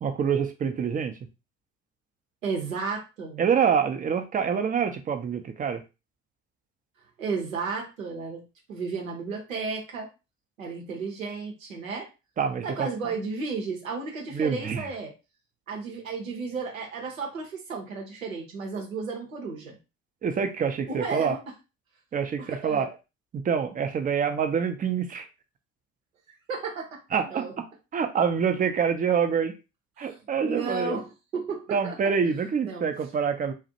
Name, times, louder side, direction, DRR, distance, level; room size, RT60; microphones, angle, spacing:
voice 1, 0.0-1.2 3.4-5.8 12.4-12.9 14.3-14.9 20.2-21.3 22.1-22.9 23.3-25.3 27.1-27.6 27.9-29.6 30.0-31.0 31.7-33.5, right 6 dB, 20° right, 7 dB, 0.4 m, -26 dB
voice 2, 2.4-3.4 7.2-8.4 8.7-10.1 10.6-12.1 12.6-15.1 15.7-19.8 20.9-21.4 22.4-22.9 26.5-26.9 27.2-27.5 30.0-32.0 32.6-32.9, right 4 dB, 85° right, 0 dB, 0.7 m, -33 dB
2.4 x 2.1 x 2.7 m, 0.28 s
figure-of-eight pair, 55°, 39 cm